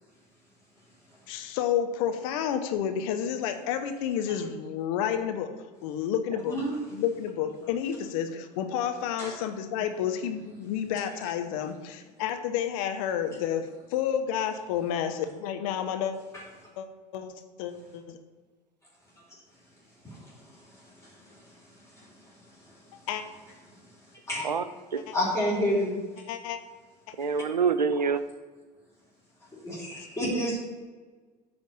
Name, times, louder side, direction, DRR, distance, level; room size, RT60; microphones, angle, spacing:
voice 1, 1.3-6.6 6.9-16.1 16.8-16.9 17.1-17.3 17.6-18.2 23.1-23.2 25.1-25.2 26.3-26.6 29.9-30.1, left 9 dB, 55° left, 7 dB, 0.9 m, -30 dB
voice 2, 6.4-6.7 9.2-9.3 20.1-20.2 21.0-21.4 21.9-22.1 24.3-24.5 25.1-26.0 29.5-30.6, equal, 15° left, -6 dB, 2.8 m, -29 dB
voice 3, 27.2-28.2, right 5 dB, 85° right, 12 dB, 0.4 m, -25 dB
9.0 x 3.5 x 6.8 m, 1.4 s
figure-of-eight pair, 70°, 21 cm